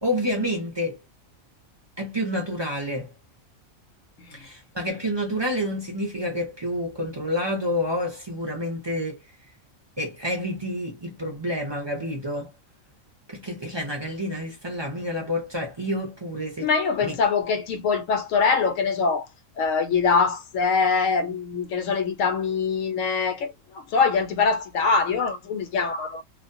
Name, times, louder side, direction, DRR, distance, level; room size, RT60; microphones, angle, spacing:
voice 1, 0.0-1.0 2.0-3.1 4.3-9.2 10.0-12.5 13.3-16.7 17.0-17.1, equal, 30° right, 0.5 m, -29 dB
voice 2, 16.6-19.3 19.6-26.2, left 5 dB, 75° left, 1.0 m, -23 dB
2.4 x 2.1 x 2.6 m
omnidirectional pair, 1.4 m